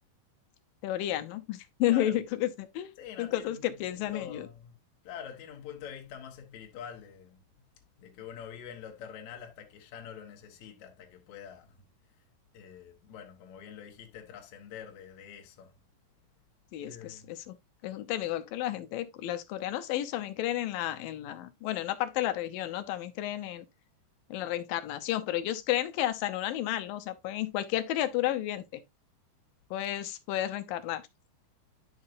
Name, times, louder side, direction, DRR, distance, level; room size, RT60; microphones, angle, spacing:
voice 1, 0.8-2.9 3.2-4.5 16.7-17.6 17.8-23.7 24.3-28.8 29.7-31.0, left 13 dB, 85° left, 2.6 m, -32 dB
voice 2, 1.8-2.2 3.0-4.8 5.0-7.4 8.0-11.8 12.5-15.8 16.8-17.4, left 8 dB, 65° left, 2.5 m, -46 dB
10.5 x 5.6 x 2.5 m
omnidirectional pair, 3.9 m